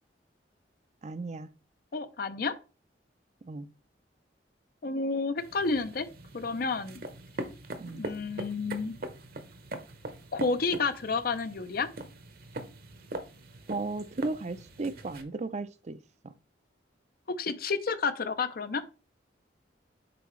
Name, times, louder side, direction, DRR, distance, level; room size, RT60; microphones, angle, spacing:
voice 1, 1.0-1.5 3.4-3.7 7.8-8.0 13.7-16.0 16.2-16.3, right 3 dB, 40° right, 0.5 m, -35 dB
voice 2, 1.9-2.5 4.8-6.1 6.3-7.0 7.8-8.9 10.3-11.9 17.3-18.8, left 4 dB, 55° left, 0.6 m, -30 dB
sound 1, 5.4-15.2, right 2 dB, 55° right, 0.9 m, -42 dB
6.9 x 4.8 x 3.2 m
head